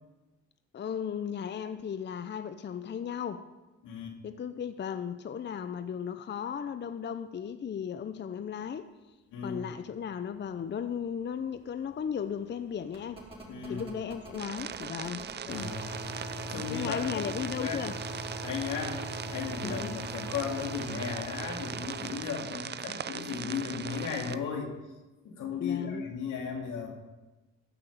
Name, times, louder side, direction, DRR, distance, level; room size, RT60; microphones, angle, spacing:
voice 1, 0.7-3.4 4.2-8.9 9.4-13.3 13.7-15.8 16.7-18.0 19.6-19.9 25.6-26.0, left 8 dB, 35° left, 0.6 m, -36 dB
voice 2, 3.8-4.2 9.3-9.7 13.5-13.9 15.5-15.9 16.4-17.9 18.4-24.7 25.2-27.0, left 6 dB, 85° left, 2.6 m, -36 dB
sound 1, 11.0-11.1 11.3-22.2 23.7-23.8, right 1 dB, 20° right, 4.7 m, -42 dB
sound 2, 14.4-24.4, right 8 dB, 35° right, 0.5 m, -40 dB
14.5 x 6.0 x 7.0 m
cardioid pair, 90°, 30 cm